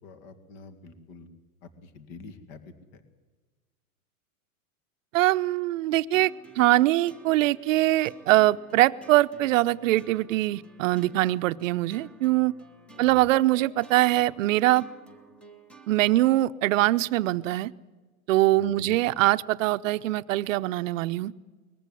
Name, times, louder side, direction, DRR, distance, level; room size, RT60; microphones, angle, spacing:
voice 1, 0.0-1.3 1.6-3.0 12.9-13.2 18.5-19.0, left 3 dB, 45° left, 2.3 m, -46 dB
voice 2, 5.1-6.3 6.6-12.5 13.0-14.9 15.9-17.7 18.3-21.3, right 16 dB, 60° right, 0.8 m, -23 dB
sound 1, 6.1-16.3, right 3 dB, 5° left, 1.1 m, -52 dB
20.5 x 15.0 x 9.7 m
supercardioid pair, 145°, 43 cm